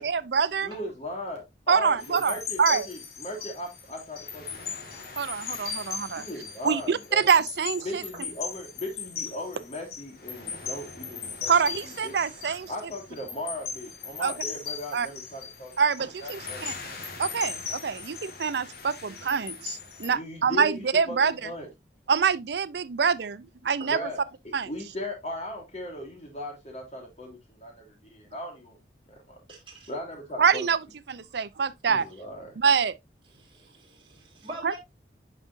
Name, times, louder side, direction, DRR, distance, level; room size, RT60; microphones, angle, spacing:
voice 1, 0.0-0.7 1.7-2.9 5.2-6.2 6.6-8.0 11.5-12.7 14.2-14.3 14.9-15.1 15.8-16.7 17.2-21.3 22.1-24.0 24.5-24.7 30.4-30.8 31.1-32.1 32.6-32.9 34.6-34.8, right 6 dB, 70° right, 0.5 m, -25 dB
voice 2, 0.6-4.4 6.1-7.2 7.8-11.6 11.8-12.1 12.7-15.7 16.2-16.6 20.1-21.7 23.9-28.8 29.1-29.4 29.9-30.7 31.9-32.6, left 1 dB, 40° left, 3.3 m, -38 dB
sound 1, 2.0-20.1, left 6 dB, 55° left, 1.8 m, -38 dB
voice 3, 29.5-29.9 33.4-34.8, right 1 dB, 30° right, 3.4 m, -44 dB
9.8 x 5.1 x 2.6 m
head